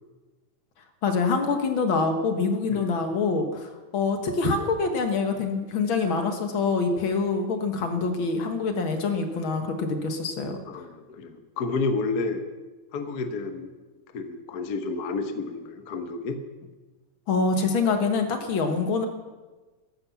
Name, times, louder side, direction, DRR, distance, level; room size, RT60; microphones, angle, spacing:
voice 1, 1.0-10.6 17.3-19.1, left 4 dB, 50° left, 5 dB, 1.7 m, -25 dB
voice 2, 10.7-12.4 12.9-13.7 14.1-16.4, left 3 dB, 85° left, 7 dB, 0.8 m, -30 dB
13.5 x 11.5 x 7.2 m, 1.2 s
omnidirectional pair, 3.6 m